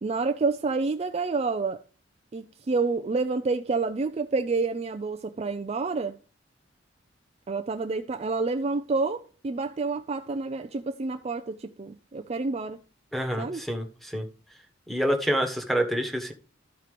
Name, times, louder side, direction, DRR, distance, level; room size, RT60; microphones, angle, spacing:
voice 1, 0.0-1.8 2.3-6.2 7.5-12.8 13.4-13.6, right 3 dB, 35° right, 0.4 m, -28 dB
voice 2, 13.1-14.3 14.9-16.3, equal, ahead, 1.3 m, -27 dB
13.0 x 4.5 x 5.0 m
head